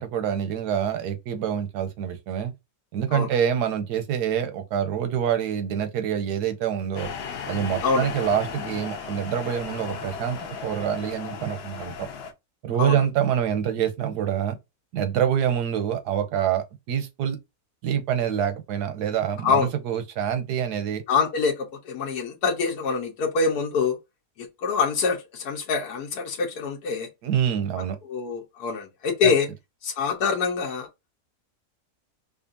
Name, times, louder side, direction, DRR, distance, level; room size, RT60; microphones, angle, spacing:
voice 1, 0.0-2.5 2.9-7.1 7.5-12.1 12.6-14.6 14.9-17.4 17.8-21.0 27.2-28.0 29.2-29.3, right 9 dB, 90° right, 1.3 m, -26 dB
sound 1, 6.9-12.3, left 6 dB, 60° left, 0.7 m, -35 dB
voice 2, 21.1-24.0 24.4-27.1 27.8-29.5 29.8-30.9, left 5 dB, 80° left, 1.3 m, -25 dB
5.1 x 2.5 x 2.6 m
omnidirectional pair, 1.7 m